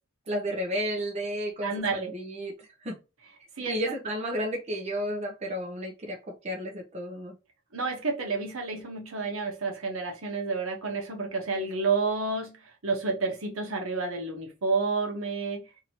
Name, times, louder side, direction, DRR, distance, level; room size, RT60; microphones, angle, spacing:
voice 1, 0.3-3.0 3.7-7.3, equal, 35° right, 0.7 m, -32 dB
voice 2, 1.6-2.1 3.6-3.7 7.7-15.6, right 4 dB, 80° right, 1.0 m, -30 dB
2.9 x 2.7 x 2.8 m
head